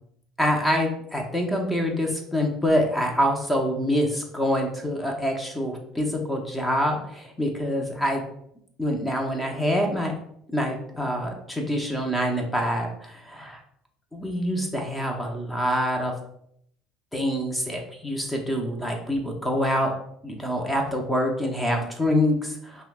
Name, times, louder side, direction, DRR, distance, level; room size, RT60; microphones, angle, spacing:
voice 1, 0.4-8.2 8.8-10.1 10.5-13.6 14.1-16.1 17.1-19.9 20.2-22.8, equal, 10° left, 1 dB, 0.7 m, -26 dB
5.4 x 2.1 x 2.3 m, 0.70 s
supercardioid pair, 85°, 0 cm